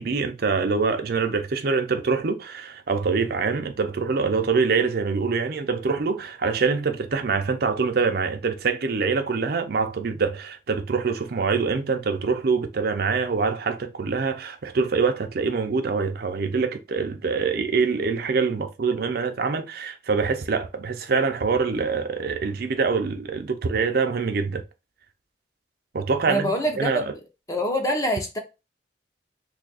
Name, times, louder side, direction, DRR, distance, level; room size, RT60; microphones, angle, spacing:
voice 1, 0.0-24.6 25.9-27.1, right 4 dB, 60° right, 0.5 m, -25 dB
voice 2, 26.3-27.1 27.5-28.4, equal, 20° left, 0.7 m, -25 dB
2.7 x 2.4 x 4.0 m
head